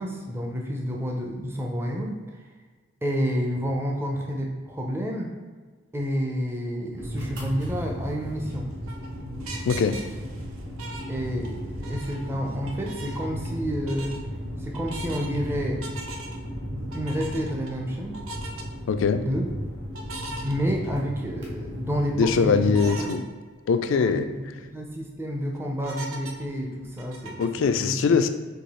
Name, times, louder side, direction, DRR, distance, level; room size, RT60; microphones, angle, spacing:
voice 1, 0.0-2.5 3.0-5.3 5.9-8.7 11.1-14.2 14.6-15.8 16.9-18.2 19.2-19.4 20.4-22.7 23.1-23.2 23.9-28.1, equal, 10° right, 0 dB, 0.4 m, -30 dB
sound 1, 6.9-22.9, equal, 60° right, 1.2 m, -35 dB
sound 2, 8.4-11.6 11.8-13.6 13.9-14.2 14.7-15.4 15.8-16.5 16.9-17.7 18.1-18.6 19.9-21.2 21.6-21.7 22.7-23.2 23.7-23.8 24.0-24.1 24.6-25.0 25.8-27.6, right 2 dB, 90° right, 0.6 m, -40 dB
voice 2, 9.7-10.0 18.9-19.2 22.2-23.2 23.7-24.3 27.4-28.3, left 5 dB, 65° left, 10 dB, 0.3 m, -22 dB
4.7 x 2.7 x 4.1 m, 1.4 s
head